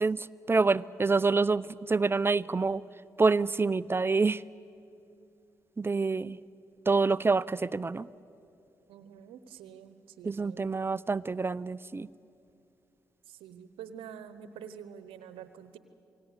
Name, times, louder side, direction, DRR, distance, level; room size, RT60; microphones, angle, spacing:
voice 1, 0.0-2.8 3.2-4.4 5.8-6.4 6.9-8.1 10.2-12.1, right 4 dB, 25° right, 18 dB, 0.6 m, -27 dB
voice 2, 8.9-10.7 13.3-15.8, right 8 dB, 75° right, 12 dB, 1.0 m, -47 dB
28.0 x 18.5 x 8.4 m, 2.7 s
hypercardioid pair, 40°, 9 cm